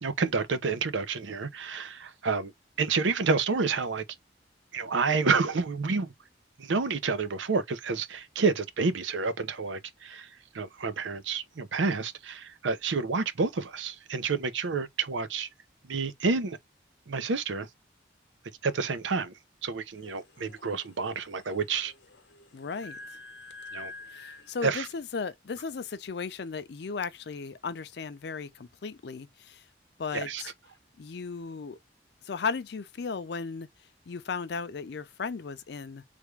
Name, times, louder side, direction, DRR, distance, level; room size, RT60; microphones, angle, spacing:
voice 1, 0.0-2.5 2.8-4.0 4.7-6.1 6.6-10.3 10.5-15.5 15.9-16.6 17.1-17.7 18.6-19.3 19.6-21.9 23.7-23.9 24.6-24.9 30.1-30.4, right 4 dB, 90° right, 0.6 m, -29 dB
sound 1, 19.9-25.0, left 3 dB, 90° left, 0.8 m, -48 dB
voice 2, 22.5-23.0 24.1-29.6 30.0-30.5 31.0-31.8 32.3-33.7 34.1-36.0, left 5 dB, 60° left, 0.5 m, -36 dB
3.4 x 2.3 x 3.1 m
head